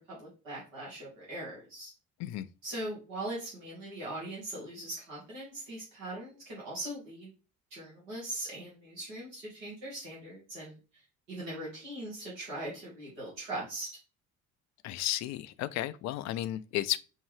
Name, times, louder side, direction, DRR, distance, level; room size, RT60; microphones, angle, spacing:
voice 1, 0.1-1.9 2.6-7.3 7.7-10.8 11.3-13.9, right 1 dB, 70° right, 1.9 m, -40 dB
voice 2, 14.8-17.0, left 14 dB, 45° left, 0.4 m, -33 dB
5.4 x 2.6 x 3.2 m
figure-of-eight pair, 50°, 40 cm